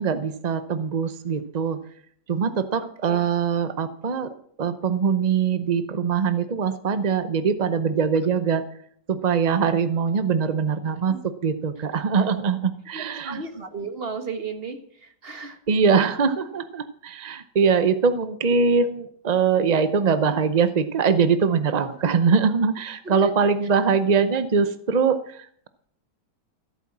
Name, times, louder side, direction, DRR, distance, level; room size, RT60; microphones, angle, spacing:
voice 1, 0.0-1.8 2.3-8.6 9.1-11.2 11.4-13.4 15.7-25.7, right 6 dB, 60° right, 11 dB, 0.4 m, -22 dB
voice 2, 12.9-15.6 21.8-22.0 23.0-23.3, right 4 dB, 35° right, 7 dB, 1.7 m, -35 dB
15.0 x 8.7 x 7.3 m, 0.63 s
omnidirectional pair, 1.9 m